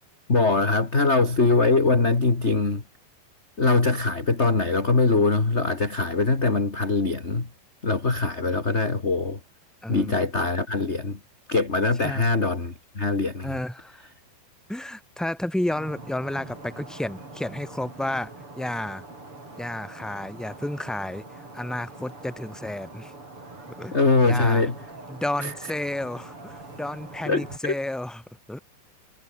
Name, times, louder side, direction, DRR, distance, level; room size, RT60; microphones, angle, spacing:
voice 1, 0.3-2.8 3.6-7.5 7.8-9.4 9.9-11.2 11.5-13.6 23.9-24.7 25.4-25.5 27.2-27.7, left 3 dB, 20° left, 2.2 m, -22 dB
voice 2, 9.8-10.2 12.0-12.3 13.4-14.1 14.7-19.0 19.6-21.2 21.5-23.1 23.7-23.9 24.2-24.7 25.1-28.2 28.5-28.6, left 1 dB, ahead, 3.5 m, -31 dB
sound 1, 15.7-27.6, right 2 dB, 30° right, 8.8 m, -43 dB
omnidirectional pair, 5.0 m